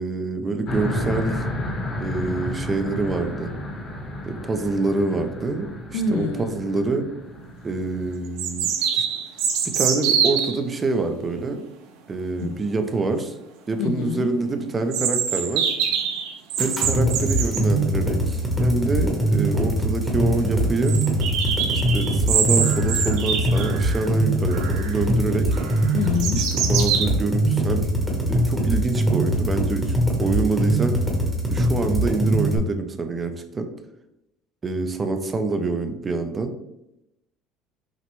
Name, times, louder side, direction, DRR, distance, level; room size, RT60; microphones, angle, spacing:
voice 1, 0.0-1.4 2.0-3.5 4.2-7.1 7.6-9.1 9.6-11.6 12.1-13.3 13.7-15.7 16.6-21.0 21.9-25.6 26.4-27.9 28.3-31.0 31.5-33.7 34.6-36.5, right 3 dB, 20° right, 7 dB, 0.4 m, -26 dB
sound 1, 0.6-8.1, left 1 dB, 45° left, 0.9 m, -31 dB
voice 2, 5.9-6.7 12.4-12.6 13.8-14.3 19.0-19.2 25.9-26.5, left 4 dB, 85° left, 10 dB, 0.4 m, -26 dB
sound 2, 7.4-7.5 8.4-10.6 14.9-17.7 19.3-19.4 19.6-19.7 20.1-20.2 20.9-24.1 24.5-25.0 25.5-27.0, right 7 dB, 85° right, 0.6 m, -25 dB
sound 3, 16.6-32.6, right 1 dB, ahead, 0.8 m, -22 dB
5.8 x 2.1 x 3.0 m, 0.85 s
cardioid pair, 155°, 0 cm